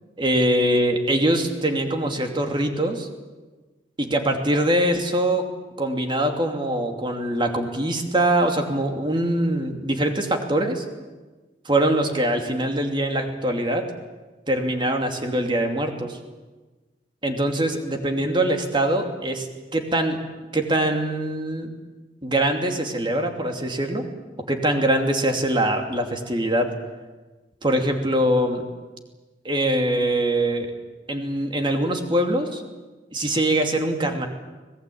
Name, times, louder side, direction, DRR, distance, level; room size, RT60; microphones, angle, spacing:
voice 1, 0.2-3.1 4.0-5.5 5.8-10.8 11.6-13.8 14.5-16.2 17.2-19.5 19.7-20.2 20.5-21.7 22.2-24.0 24.5-26.7 27.6-28.6 29.4-30.7 31.1-32.6 33.1-34.3, right 1 dB, 25° right, 4 dB, 2.8 m, -23 dB
25.0 x 19.5 x 8.7 m, 1.2 s
head